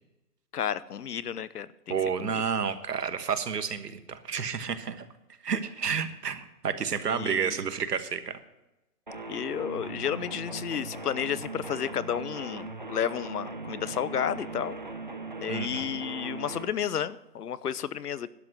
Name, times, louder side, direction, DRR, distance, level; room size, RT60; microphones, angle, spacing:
voice 1, 0.5-2.4 7.1-7.6 9.3-14.8 15.4-18.3, left 9 dB, 70° left, 17 dB, 0.8 m, -32 dB
voice 2, 1.9-5.1 5.4-8.4 15.5-15.8, right 6 dB, 80° right, 11 dB, 1.5 m, -30 dB
sound 1, 9.1-16.7, right 2 dB, 30° right, 0.5 m, -39 dB
12.0 x 8.1 x 7.6 m, 0.96 s
hypercardioid pair, 170°, 47 cm